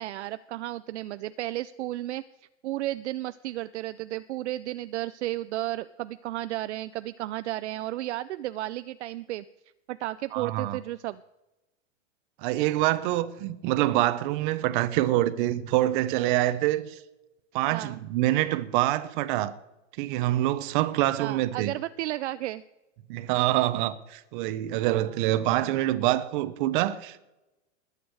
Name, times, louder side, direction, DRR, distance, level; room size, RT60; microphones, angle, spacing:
voice 1, 0.0-2.2 2.6-9.4 9.9-11.2 17.7-18.0 21.2-22.6 25.0-25.1, right 15 dB, 65° right, 0.6 m, -33 dB
voice 2, 10.3-10.8 12.4-17.0 17.5-19.5 20.0-21.7 23.1-27.2, right 15 dB, 40° right, 1.0 m, -26 dB
20.5 x 8.6 x 4.8 m
hypercardioid pair, 140°, 38 cm